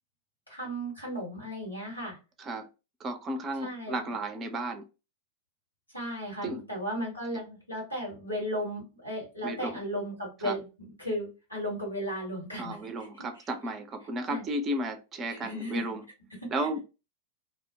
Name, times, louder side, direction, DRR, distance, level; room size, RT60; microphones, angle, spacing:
voice 1, 0.5-2.2 3.6-4.1 5.9-13.2 14.3-14.4 15.3-16.0 16.3-16.7, equal, 85° left, 1.2 m, -35 dB
voice 2, 3.0-4.8 6.4-6.6 9.4-9.7 10.4-10.5 12.6-16.0 16.5-16.8, right 1 dB, 25° right, 0.5 m, -33 dB
2.3 x 2.0 x 2.7 m
figure-of-eight pair, 90°, 0 cm